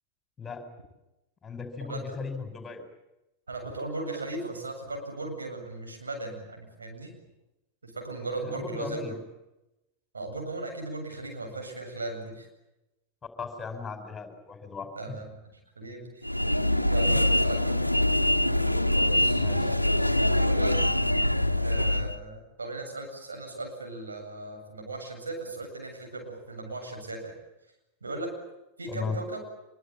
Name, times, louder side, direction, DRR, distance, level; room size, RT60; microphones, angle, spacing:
voice 1, 1.4-2.8 8.4-9.2 13.4-15.1 19.4-19.7 28.9-29.2, left 5 dB, 15° left, 7 dB, 5.3 m, -37 dB
voice 2, 3.5-7.1 7.8-9.2 10.1-12.5 14.9-15.4 15.8-16.3 16.9-17.8 19.1-19.4 20.3-20.7 21.6-27.4 28.0-28.3 28.8-29.4, right 2 dB, 75° right, 2 dB, 7.9 m, -37 dB
sound 1, 16.2-22.2, left 1 dB, 90° left, 1.2 m, -24 dB
25.5 x 24.0 x 9.1 m, 0.95 s
figure-of-eight pair, 90°, 0 cm